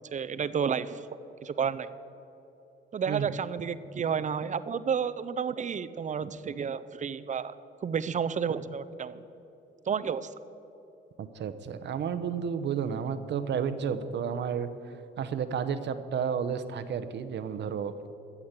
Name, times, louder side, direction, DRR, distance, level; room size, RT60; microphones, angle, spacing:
voice 1, 0.1-1.0 1.4-1.9 2.9-7.5 7.8-9.2 9.9-10.3, right 7 dB, 40° right, 14 dB, 0.6 m, -31 dB
voice 2, 11.2-14.7 15.2-17.9, right 7 dB, 60° right, 12 dB, 0.9 m, -31 dB
15.0 x 7.2 x 8.1 m, 3.0 s
cardioid pair, 90°, 20 cm